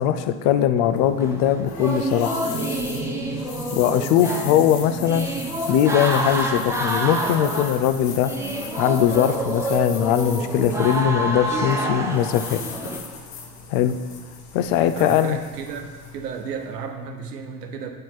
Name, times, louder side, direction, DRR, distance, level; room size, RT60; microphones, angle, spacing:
voice 1, 0.0-2.4 3.7-5.3 5.7-8.3 8.7-12.6 13.7-14.0 14.5-15.4, left 10 dB, 45° left, 10 dB, 0.6 m, -20 dB
sound 1, 0.7-16.9, left 5 dB, 65° left, 1.2 m, -39 dB
sound 2, 1.2-13.0, right 1 dB, 5° right, 0.5 m, -28 dB
sound 3, 2.4-9.3 10.2-12.0, right 2 dB, 50° right, 1.4 m, -36 dB
voice 2, 14.9-17.9, right 6 dB, 75° right, 5 dB, 1.0 m, -34 dB
8.5 x 4.5 x 4.4 m, 1.4 s
figure-of-eight pair, 80°, 48 cm